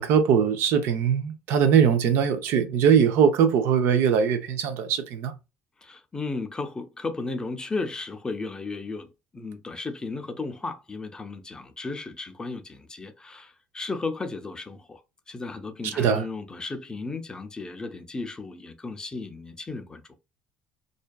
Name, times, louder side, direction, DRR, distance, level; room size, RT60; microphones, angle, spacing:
voice 1, 0.0-5.3 15.8-16.2, right 7 dB, 70° right, 0.5 m, -21 dB
voice 2, 5.8-15.0 15.3-20.0, left 3 dB, 20° left, 0.4 m, -34 dB
2.5 x 2.2 x 2.2 m
supercardioid pair, 105°, 4 cm